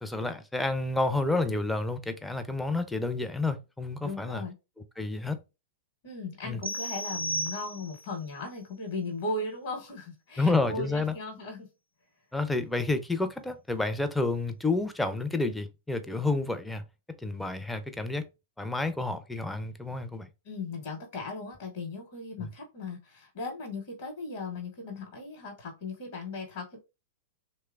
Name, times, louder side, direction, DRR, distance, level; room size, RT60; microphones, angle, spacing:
voice 1, 0.0-4.4 5.0-5.4 6.5-6.6 10.4-11.1 12.3-16.8 17.2-18.2 18.6-20.3 22.4-22.5, left 3 dB, 5° left, 0.4 m, -29 dB
voice 2, 4.0-4.5 6.0-11.7 20.4-26.8, left 3 dB, 55° left, 0.8 m, -37 dB
sound 1, 6.6-8.1, right 1 dB, 80° right, 0.5 m, -34 dB
3.0 x 2.0 x 2.3 m
figure-of-eight pair, 100°, 0 cm